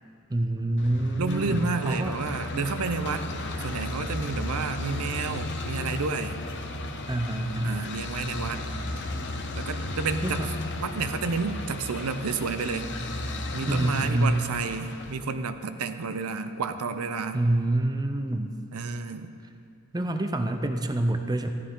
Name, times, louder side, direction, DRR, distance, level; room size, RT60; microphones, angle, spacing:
voice 1, 0.3-2.2 7.1-7.9 10.2-10.5 13.7-14.4 17.3-18.6 19.9-21.5, right 1 dB, 20° right, 6 dB, 0.5 m, -26 dB
sound 1, 0.8-15.1, left 2 dB, 55° left, 0.9 m, -34 dB
voice 2, 1.2-3.3 3.6-6.4 7.6-8.6 9.6-10.5 10.8-12.9 13.5-17.4 18.7-19.3, right 4 dB, 75° right, 10 dB, 0.6 m, -30 dB
14.0 x 11.5 x 3.8 m, 2.6 s
head